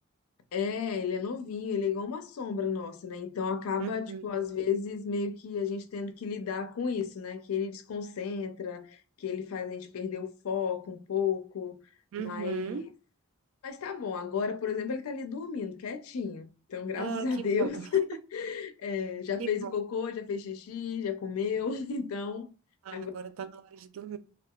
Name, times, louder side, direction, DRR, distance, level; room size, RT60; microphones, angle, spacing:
voice 1, 0.5-11.8 12.2-12.9 13.6-22.5 22.9-23.1, left 6 dB, 80° left, 0.4 m, -33 dB
voice 2, 3.8-4.2 12.1-12.8 17.0-17.9 19.4-19.7 22.9-24.2, right 7 dB, 65° right, 0.3 m, -37 dB
2.7 x 2.3 x 2.2 m
head